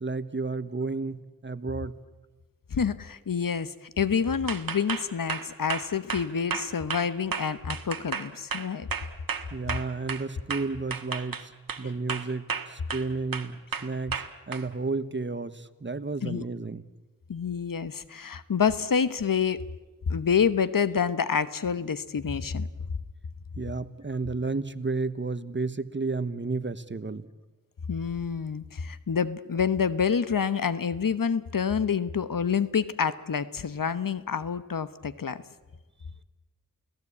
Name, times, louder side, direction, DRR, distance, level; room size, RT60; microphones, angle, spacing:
voice 1, 0.0-2.0 9.5-11.4 11.8-14.2 14.5-16.8 23.6-27.2, right 3 dB, 35° right, 13 dB, 1.1 m, -32 dB
voice 2, 2.7-3.7 4.0-8.9 16.2-16.4 17.3-19.6 20.1-22.7 27.9-35.4, left 6 dB, 70° left, 14 dB, 1.1 m, -27 dB
sound 1, 4.5-10.2 10.5-11.8 12.1-13.1 13.3-14.6, right 6 dB, 85° right, 1.6 m, -33 dB
29.5 x 17.5 x 8.5 m, 1.2 s
wide cardioid pair, 80°, 34 cm